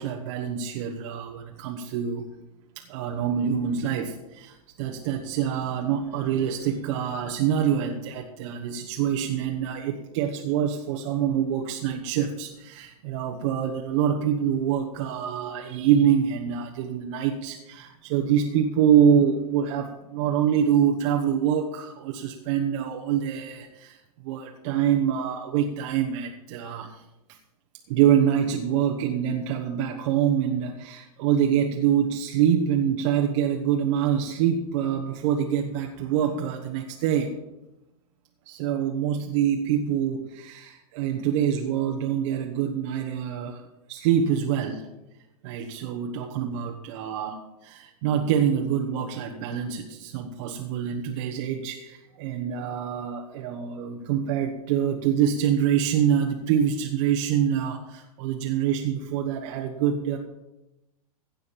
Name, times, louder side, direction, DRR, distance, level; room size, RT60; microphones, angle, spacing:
voice 1, 0.0-2.3 2.9-27.0 27.3-27.4 27.9-37.4 38.5-44.9 45.4-60.2, right 9 dB, 50° right, 3 dB, 1.3 m, -25 dB
16.5 x 5.5 x 7.2 m, 0.95 s
hypercardioid pair, 105°, 19 cm